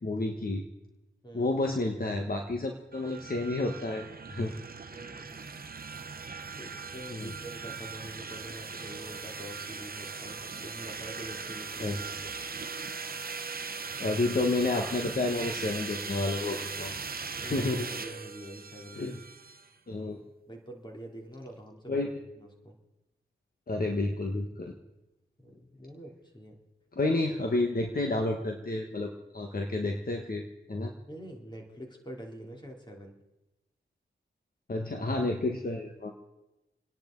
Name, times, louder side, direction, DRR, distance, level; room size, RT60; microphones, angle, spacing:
voice 1, 0.0-0.6 1.3-4.5 7.1-7.3 11.8-12.0 14.0-17.0 17.4-17.9 18.9-19.2 19.9-20.2 21.9-22.1 23.7-24.7 26.9-30.4 30.7-30.9 34.7-36.1, left 2 dB, 45° left, 2 dB, 1.5 m, -30 dB
sound 1, 2.9-19.7, right 5 dB, 50° right, 0.9 m, -39 dB
voice 2, 4.8-5.5 6.4-12.3 17.4-19.1 20.5-22.1 22.4-22.8 25.4-26.6 31.1-33.1, equal, 20° left, 0 dB, 3.4 m, -46 dB
28.0 x 10.5 x 4.0 m, 0.98 s
cardioid pair, 55°, 20 cm